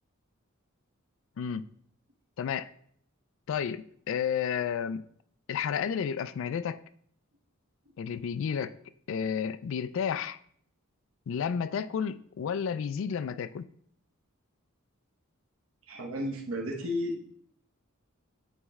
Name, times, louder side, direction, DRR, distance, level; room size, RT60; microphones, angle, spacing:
voice 1, 2.4-2.7 3.5-5.0 5.5-6.8 8.0-8.8 9.1-10.4 11.3-13.7, left 7 dB, 65° left, 0.3 m, -31 dB
voice 2, 15.9-17.2, left 1 dB, 75° right, 1.1 m, -33 dB
9.2 x 3.1 x 3.6 m
head